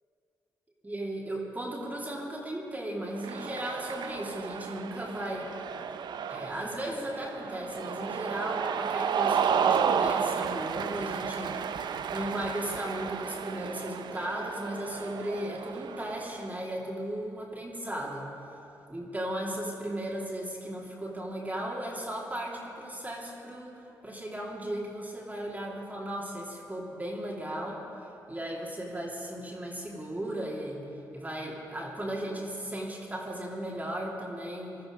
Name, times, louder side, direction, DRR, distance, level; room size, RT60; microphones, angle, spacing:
voice 1, 0.8-5.5 6.3-11.6 12.1-18.3 18.9-27.8 28.3-30.9 31.1-34.8, right 1 dB, 20° right, -3 dB, 2.9 m, -36 dB
Cheering, 3.1-16.6, right 7 dB, 60° right, 0.7 m, -32 dB
19.5 x 13.0 x 5.1 m, 2.8 s
hypercardioid pair, 45°, 8 cm